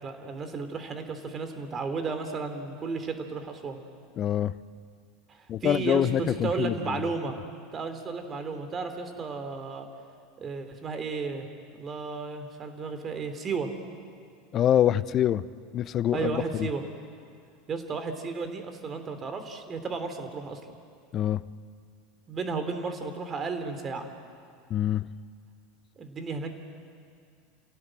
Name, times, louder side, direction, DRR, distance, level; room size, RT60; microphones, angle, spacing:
voice 1, 0.0-3.8 5.3-7.4 7.7-9.9 10.4-11.5 11.7-13.7 16.1-16.8 17.7-20.8 22.3-24.1 26.0-26.6, right 4 dB, 30° right, 7 dB, 3.2 m, -33 dB
voice 2, 4.2-4.5 5.5-7.0 14.5-15.4 15.7-16.4 21.1-21.4 24.7-25.1, left 11 dB, 40° left, 17 dB, 0.7 m, -25 dB
28.5 x 17.0 x 7.8 m, 2.3 s
hypercardioid pair, 80°, 0 cm